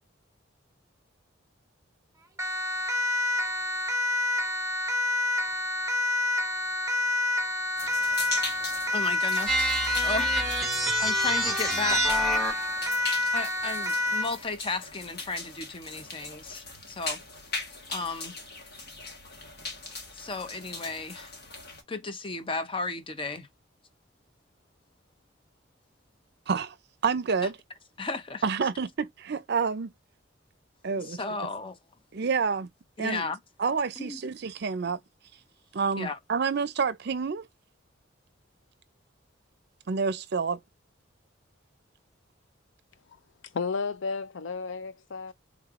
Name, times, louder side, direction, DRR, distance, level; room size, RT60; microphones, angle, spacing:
Siren, 2.4-14.4, left 2 dB, 15° right, 0.6 m, -28 dB
sound 1, 7.8-21.8, left 3 dB, 55° left, 1.3 m, -40 dB
voice 1, 8.9-9.8 10.0-10.3 11.0-12.3 13.3-17.2 17.9-18.3 20.1-21.3 21.9-23.5 28.0-28.4 30.9-31.8 33.0-33.4 34.0-34.2 36.0-36.2, left 3 dB, 25° left, 0.6 m, -34 dB
sound 2, 9.5-12.8, right 2 dB, ahead, 1.1 m, -29 dB
voice 2, 27.0-27.6 28.4-29.9 30.8-31.2 32.1-32.7 33.0-33.3 33.6-35.0 35.7-37.5 39.9-40.6, right 5 dB, 55° right, 0.5 m, -28 dB
voice 3, 43.5-45.3, left 4 dB, 70° left, 0.5 m, -32 dB
3.7 x 3.1 x 2.4 m
head